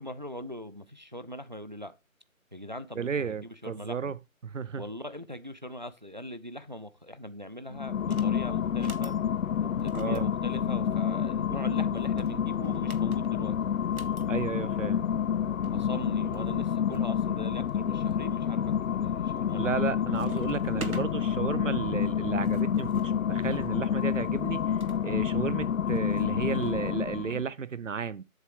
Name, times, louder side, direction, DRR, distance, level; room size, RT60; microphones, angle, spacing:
voice 1, 0.0-1.9 2.5-4.1 4.8-9.2 9.6-13.6 15.7-19.9, equal, 35° right, 0.5 m, -41 dB
voice 2, 3.0-4.2 4.4-4.8 9.9-10.2 14.3-15.1 19.5-24.6 25.0-28.2, right 6 dB, 60° right, 0.8 m, -33 dB
sound 1, 7.7-27.5, left 8 dB, 70° left, 0.5 m, -29 dB
sound 2, 8.0-8.3 8.7-9.2 9.8-11.2 12.0-14.3 15.3-15.4 15.6-15.7 16.3-17.1 17.7-18.2 18.7-19.1 19.4-19.9 20.1-21.1 22.1-25.0 26.0-27.0, right 4 dB, 85° right, 1.4 m, -46 dB
8.1 x 6.9 x 4.9 m
figure-of-eight pair, 170°, 42 cm